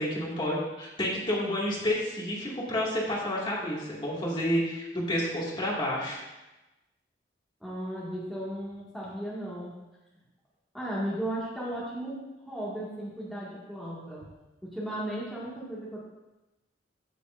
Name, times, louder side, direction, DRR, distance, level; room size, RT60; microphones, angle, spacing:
voice 1, 0.0-6.2, left 1 dB, 25° left, -5 dB, 2.2 m, -30 dB
voice 2, 7.6-9.8 10.7-14.3 14.6-16.0, right 1 dB, ahead, -9 dB, 1.9 m, -35 dB
14.5 x 6.8 x 2.6 m, 1.0 s
head